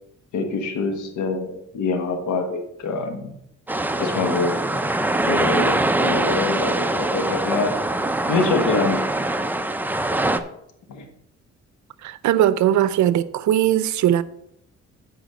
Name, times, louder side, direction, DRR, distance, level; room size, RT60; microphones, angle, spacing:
voice 1, 0.3-3.3 4.0-4.6 5.3-7.7 8.3-9.1 10.9-11.1, left 3 dB, 75° left, 1.4 m, -25 dB
sound 1, 3.7-10.4, right 2 dB, 5° right, 0.6 m, -23 dB
voice 2, 12.0-14.2, right 11 dB, 70° right, 0.6 m, -19 dB
8.1 x 5.0 x 6.3 m
cardioid pair, 90°, 30 cm